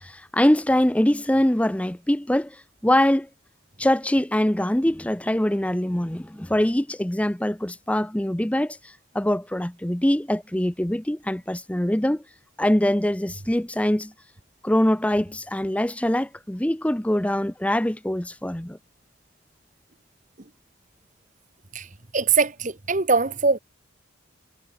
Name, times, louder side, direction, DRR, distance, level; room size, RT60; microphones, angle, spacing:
voice 1, 0.0-2.6 2.8-3.3 3.8-12.2 12.6-14.1 14.6-18.8, left 1 dB, 5° left, 0.6 m, -23 dB
voice 2, 22.1-23.6, right 4 dB, 40° right, 1.3 m, -22 dB
head